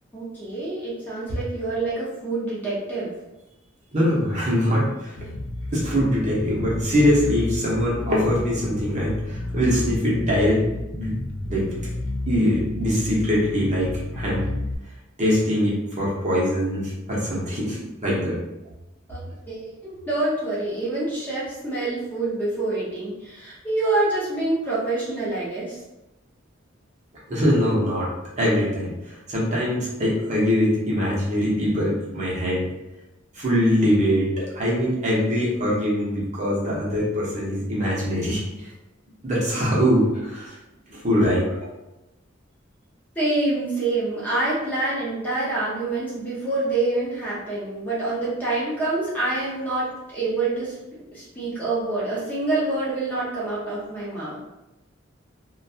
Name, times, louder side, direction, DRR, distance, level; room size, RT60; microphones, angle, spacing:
voice 1, 0.1-3.1 19.1-25.8 43.2-50.8 51.1-54.4, right 2 dB, 10° left, -8 dB, 0.7 m, -26 dB
voice 2, 3.9-5.2 5.7-10.6 10.9-11.2 11.5-11.7 12.3-14.4 15.2-18.4 27.3-28.1 28.4-32.6 33.3-38.7 39.2-40.6 40.9-41.5, equal, 35° right, -6 dB, 0.8 m, -22 dB
Bass guitar, 5.2-14.8, left 1 dB, 80° left, 0.4 m, -31 dB
2.5 x 2.2 x 2.6 m, 0.96 s
head